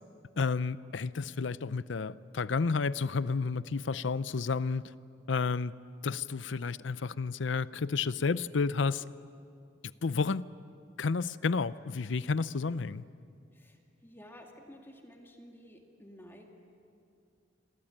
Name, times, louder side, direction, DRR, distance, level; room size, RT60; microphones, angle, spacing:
voice 1, 0.4-4.8 5.3-5.7 6.0-9.0 10.0-10.5 11.0-13.0, left 4 dB, 75° left, 17 dB, 0.6 m, -31 dB
voice 2, 13.5-16.5, equal, 10° left, 1 dB, 2.2 m, -53 dB
29.0 x 23.0 x 8.8 m, 2.5 s
head